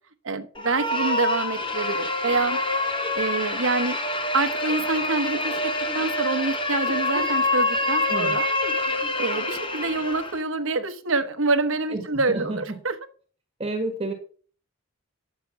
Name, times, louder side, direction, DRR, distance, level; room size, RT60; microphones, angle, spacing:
voice 1, 0.2-2.6 3.1-4.0 4.3-8.5 9.2-12.9, right 3 dB, 65° right, 1.0 m, -26 dB
sound 1, 0.5-10.4, left 2 dB, 25° left, 1.2 m, -26 dB
voice 2, 12.3-12.8 13.6-14.1, right 2 dB, 25° right, 1.6 m, -29 dB
9.0 x 6.8 x 5.8 m
head